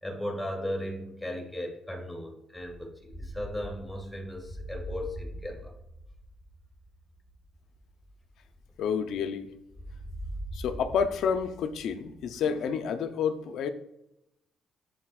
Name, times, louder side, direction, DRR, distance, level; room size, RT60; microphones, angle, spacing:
voice 1, 0.0-5.7, left 1 dB, 10° left, 0 dB, 1.9 m, -36 dB
sound 1, 2.7-9.2 9.7-12.9, equal, 5° right, 1.4 m, -43 dB
voice 2, 8.8-9.5 10.5-13.7, left 6 dB, 75° left, 9 dB, 0.6 m, -29 dB
12.0 x 4.3 x 2.4 m, 0.83 s
cardioid pair, 90°, 0 cm